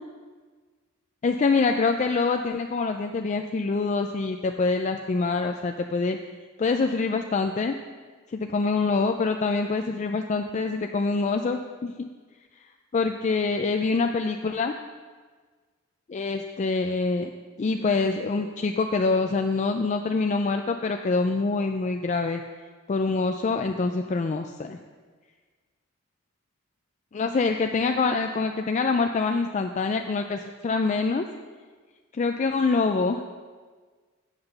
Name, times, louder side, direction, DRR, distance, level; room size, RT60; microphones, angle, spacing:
voice 1, 1.2-6.2 6.6-7.7 8.3-12.1 12.9-14.7 16.1-17.3 17.6-22.4 22.9-24.8 27.1-31.3 32.1-33.2, left 4 dB, 35° left, 5 dB, 0.3 m, -25 dB
8.7 x 5.9 x 6.6 m, 1.5 s
head